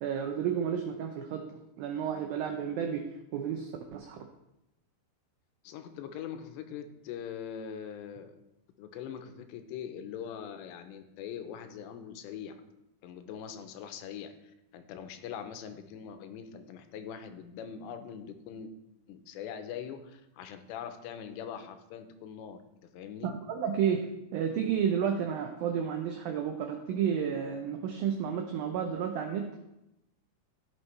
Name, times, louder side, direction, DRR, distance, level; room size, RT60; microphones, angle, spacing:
voice 1, 0.0-4.3 23.5-29.6, right 8 dB, 90° right, 4 dB, 2.0 m, -32 dB
voice 2, 5.6-8.4 8.8-12.5 13.0-18.7 19.1-22.6 22.9-23.3, left 8 dB, 85° left, 8 dB, 2.9 m, -42 dB
15.0 x 6.1 x 3.2 m, 0.89 s
omnidirectional pair, 5.0 m